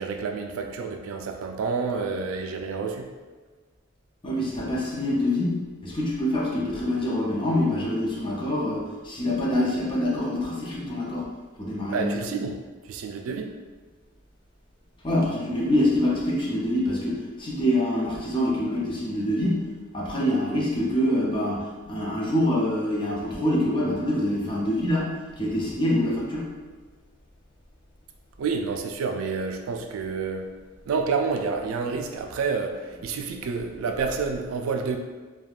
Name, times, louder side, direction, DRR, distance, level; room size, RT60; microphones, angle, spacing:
voice 1, 0.0-3.1 11.9-12.5 12.8-13.5 28.4-30.5 30.9-35.0, right 5 dB, 85° right, 5 dB, 0.3 m, -29 dB
voice 2, 4.2-11.3 11.6-12.2 15.0-19.6 19.9-26.5, left 1 dB, 25° left, -5 dB, 0.6 m, -25 dB
3.3 x 2.2 x 2.3 m, 1.3 s
head